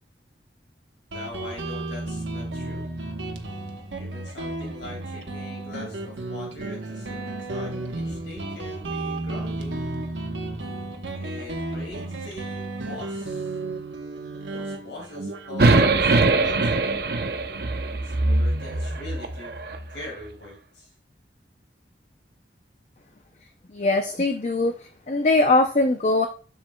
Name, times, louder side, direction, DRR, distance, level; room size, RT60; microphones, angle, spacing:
voice 1, 1.1-2.9 4.0-9.8 11.2-13.6 14.5-16.9 18.0-19.6 19.9-20.9, left 2 dB, 75° left, -1 dB, 2.3 m, -42 dB
Guitar, 1.1-18.3, right 2 dB, 85° right, 1.1 m, -33 dB
sound 1, 15.6-19.8, right 3 dB, 55° right, 0.7 m, -22 dB
voice 2, 23.7-26.3, left 2 dB, 40° left, 5 dB, 0.5 m, -21 dB
7.4 x 7.1 x 2.3 m, 0.38 s
head